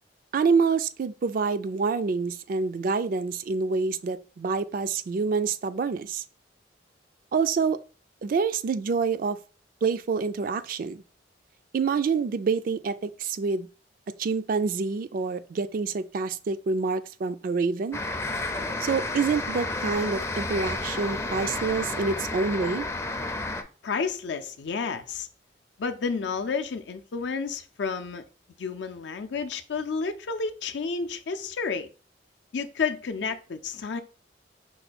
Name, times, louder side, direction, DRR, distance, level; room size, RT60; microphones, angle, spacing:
voice 1, 0.3-6.2 7.3-7.8 8.2-9.4 9.8-11.0 11.7-13.7 14.2-18.0 18.8-22.8, right 5 dB, 50° right, 0.3 m, -27 dB
sound 1, 17.9-23.6, left 2 dB, 15° left, 0.4 m, -31 dB
voice 2, 23.8-25.3 25.8-28.2 28.6-31.9 32.5-34.0, left 5 dB, 75° left, 0.5 m, -31 dB
5.5 x 2.2 x 4.2 m
head